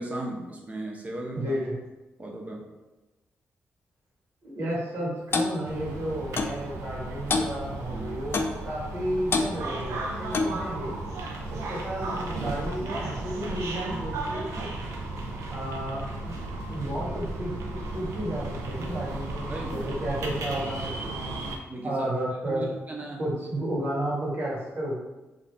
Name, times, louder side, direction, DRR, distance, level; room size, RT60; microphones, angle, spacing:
voice 1, 0.0-1.6 2.2-2.7 7.9-8.1 19.5-19.9 21.7-22.1 22.5-23.2, right 1 dB, 30° right, -1 dB, 0.8 m, -36 dB
voice 2, 1.3-1.7 4.4-11.0 11.5-14.7 15.5-16.3 16.7-21.4 21.8-22.7 23.2-25.0, right 1 dB, 60° right, -6 dB, 1.4 m, -32 dB
Clock, 5.3-5.5 6.4-6.6 7.3-7.5 8.3-8.6 9.3-9.5 10.3-10.6, left 3 dB, 50° left, 0.3 m, -25 dB
sound 1, 5.6-21.6, right 2 dB, 85° right, 0.4 m, -34 dB
2.6 x 2.4 x 3.2 m, 1.1 s
cardioid pair, 65°, 5 cm